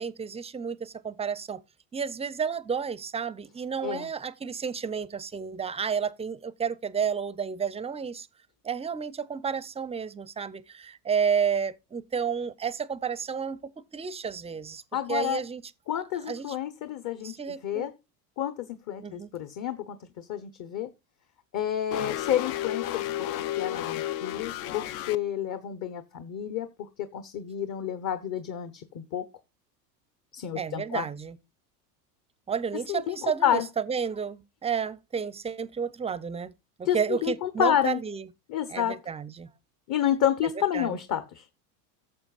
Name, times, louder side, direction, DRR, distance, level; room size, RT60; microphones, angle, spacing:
voice 1, 0.0-1.6 1.9-8.3 8.6-14.8 15.1-15.6 16.3-16.6 17.2-17.9 19.0-19.3 30.5-31.4 32.5-36.5 36.8-38.3 38.7-39.5 40.7-41.0, right 6 dB, 15° right, 0.5 m, -31 dB
voice 2, 14.9-15.4 15.9-17.9 18.4-20.9 21.5-23.1 23.6-26.7 27.0-29.2 30.3-31.1 32.9-33.7 36.8-38.0 38.5-39.0 39.9-41.4, left 10 dB, 40° left, 1.1 m, -29 dB
sound 1, 21.9-25.2, left 13 dB, 65° left, 0.9 m, -32 dB
14.5 x 6.9 x 2.4 m
supercardioid pair, 105°, 48 cm